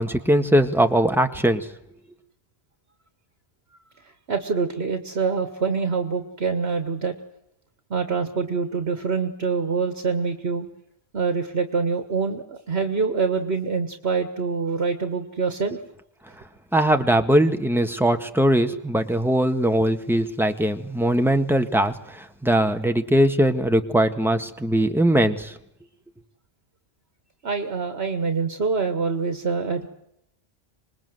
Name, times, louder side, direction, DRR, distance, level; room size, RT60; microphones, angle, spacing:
voice 1, 0.0-1.7 16.7-25.6, right 1 dB, ahead, 6 dB, 1.6 m, -21 dB
voice 2, 4.3-7.1 7.9-10.7 11.1-15.8 27.4-29.9, right 5 dB, 70° right, 8 dB, 1.7 m, -25 dB
26.5 x 20.5 x 7.9 m, 0.78 s
omnidirectional pair, 1.1 m